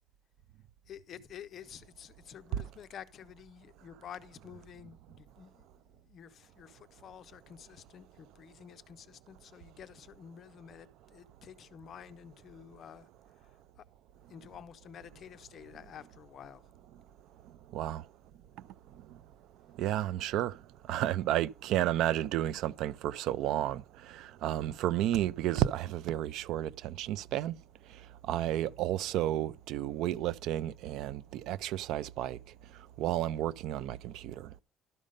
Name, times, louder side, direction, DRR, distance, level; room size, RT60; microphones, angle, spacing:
voice 1, 0.9-13.1 13.4-13.9 14.3-16.7 28.4-28.7, left 9 dB, 40° left, 0.5 m, -50 dB
voice 2, 19.8-20.5 20.9-27.5 28.3-32.4 33.0-34.5, right 13 dB, 70° right, 0.4 m, -32 dB
12.0 x 5.3 x 5.2 m
cardioid pair, 175°, 0 cm